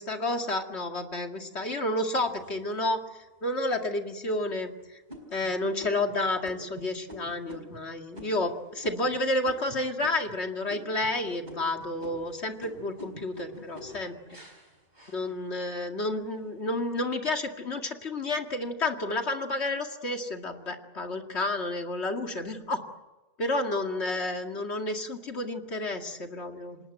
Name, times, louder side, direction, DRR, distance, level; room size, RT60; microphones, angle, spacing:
voice 1, 0.0-3.0 3.4-5.0 5.3-14.4 15.1-22.8 23.4-26.8, left 2 dB, 90° left, 4 dB, 2.5 m, -30 dB
sound 1, 2.3-3.1 3.7-3.8 4.3-4.6 5.1-10.4 10.7-11.2 11.4-15.8 16.2-16.8, left 1 dB, 45° right, 4.5 m, -47 dB
27.0 x 19.0 x 9.0 m, 1.1 s
omnidirectional pair, 1.1 m